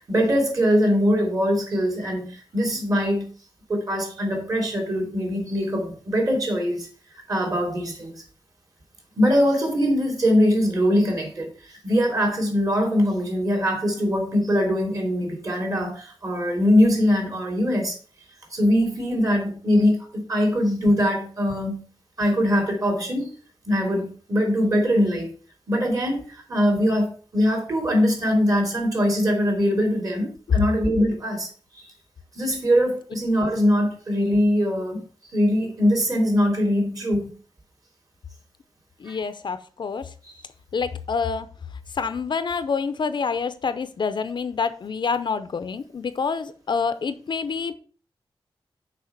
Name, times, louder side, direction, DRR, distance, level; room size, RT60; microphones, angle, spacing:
voice 1, 0.1-3.3 3.7-6.9 7.3-8.2 9.2-18.0 18.5-21.9 22.2-23.3 23.7-25.3 25.7-31.5 31.7-31.9 32.3-35.0 35.3-37.3 39.1-39.2, equal, 40° right, 3.1 m, -22 dB
voice 2, 39.0-40.1 40.7-41.5 41.9-47.7, left 5 dB, 55° left, 0.6 m, -27 dB
6.6 x 5.5 x 5.8 m
wide cardioid pair, 160°, 9 cm